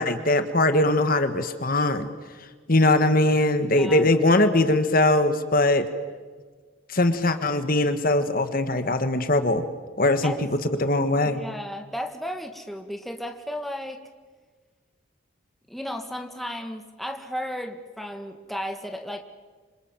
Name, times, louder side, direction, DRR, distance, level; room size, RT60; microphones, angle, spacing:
voice 1, 0.0-2.1 2.7-5.9 6.9-9.6 10.0-10.3 10.8-11.4, left 2 dB, 45° left, 9 dB, 1.7 m, -21 dB
voice 2, 3.8-4.1 10.2-10.4 11.2-14.0 15.7-19.2, equal, ahead, 4 dB, 1.8 m, -34 dB
27.0 x 26.5 x 7.6 m, 1.4 s
head